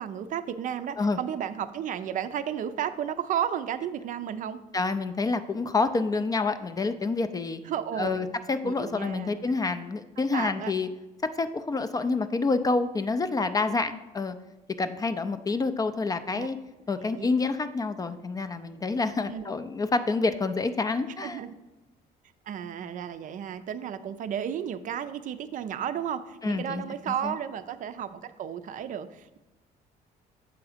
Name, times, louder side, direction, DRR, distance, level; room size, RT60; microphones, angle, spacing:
voice 1, 0.0-4.6 7.6-8.3 8.6-9.5 10.3-10.7 16.3-16.5 17.0-17.3 19.3-19.6 21.2-21.5 22.5-29.4, right 9 dB, 50° right, 11 dB, 0.4 m, -33 dB
voice 2, 4.7-7.6 8.0-10.9 11.2-14.4 14.8-16.6 16.9-21.4 26.4-27.3, left 3 dB, 20° left, 11 dB, 0.3 m, -28 dB
7.0 x 3.6 x 4.9 m, 1.1 s
cardioid pair, 110°, 17 cm